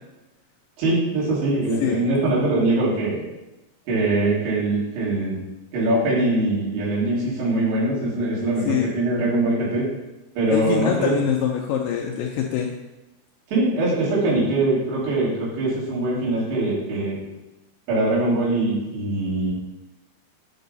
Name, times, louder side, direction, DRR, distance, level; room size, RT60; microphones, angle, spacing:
voice 1, 0.8-3.2 3.9-5.4 5.7-9.8 10.4-11.2 13.5-17.2 17.9-19.5, right 2 dB, 85° right, -7 dB, 4.4 m, -22 dB
voice 2, 10.5-12.7, left 9 dB, 85° left, 2 dB, 2.0 m, -24 dB
7.8 x 4.7 x 4.0 m, 1.0 s
omnidirectional pair, 4.5 m